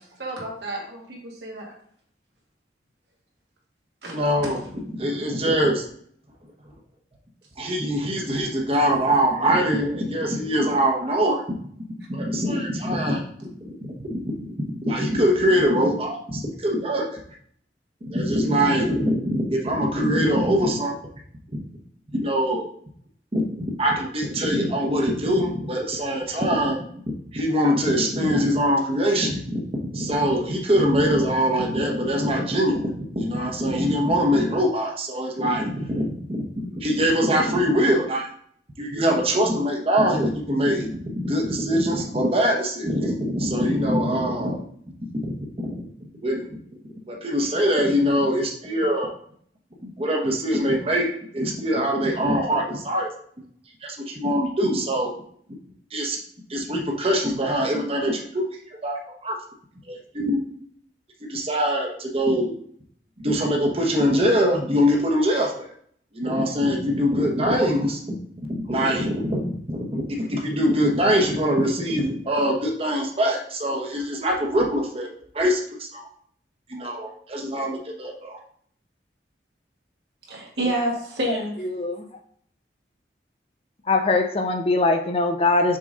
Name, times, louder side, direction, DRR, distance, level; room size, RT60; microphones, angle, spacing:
voice 1, 0.2-1.7 4.0-4.2 80.3-81.6, right 1 dB, 75° right, -2 dB, 2.0 m, -29 dB
voice 2, 4.1-4.6 5.0-5.9 7.6-11.4 12.1-13.2 14.0-14.5 14.8-17.2 18.0-20.9 22.1-22.7 23.3-29.6 29.9-38.3 38.8-40.9 41.1-44.6 45.2-45.3 45.7-45.8 46.2-46.6 47.1-49.1 49.8-53.1 53.8-55.1 55.9-56.2 56.5-58.5 58.8-59.4 59.9-60.4 61.3-62.5 63.2-65.7 66.1-68.0 68.4-75.1 75.3-76.1 76.7-78.4, equal, 35° right, 0 dB, 1.1 m, -23 dB
voice 3, 81.3-82.0 83.9-85.8, left 3 dB, 35° left, 5 dB, 0.6 m, -22 dB
6.5 x 3.9 x 3.9 m, 0.62 s
head